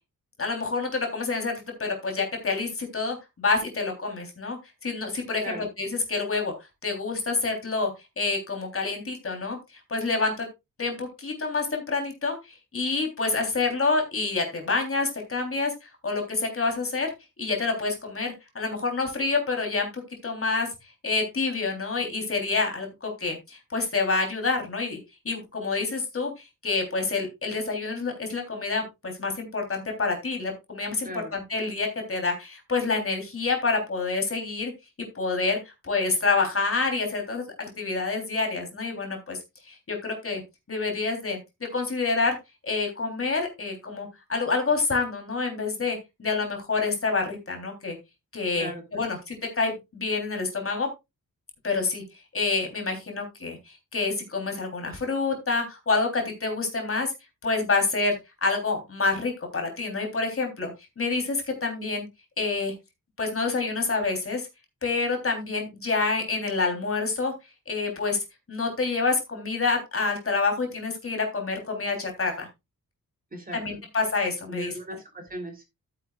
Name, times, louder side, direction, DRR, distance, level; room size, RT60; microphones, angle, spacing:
voice 1, 0.4-4.6 4.8-6.5 6.8-7.9 8.2-9.6 9.9-10.5 10.8-12.3 12.7-17.1 17.4-20.7 21.0-25.0 25.2-34.7 35.1-35.6 35.8-39.4 39.7-40.4 40.7-41.4 41.7-42.4 42.6-48.0 48.3-50.9 51.6-52.0 52.3-57.1 57.4-60.7 61.0-62.0 62.4-62.7 63.2-64.5 64.8-67.3 67.7-68.2 68.5-72.5 73.5-74.7, left 3 dB, 40° left, 3 dB, 3.5 m, -27 dB
voice 2, 48.5-49.1 73.3-73.8 74.5-75.6, right 1 dB, 25° right, 3 dB, 3.3 m, -37 dB
13.5 x 9.2 x 2.4 m, 0.23 s
wide cardioid pair, 160°, 35 cm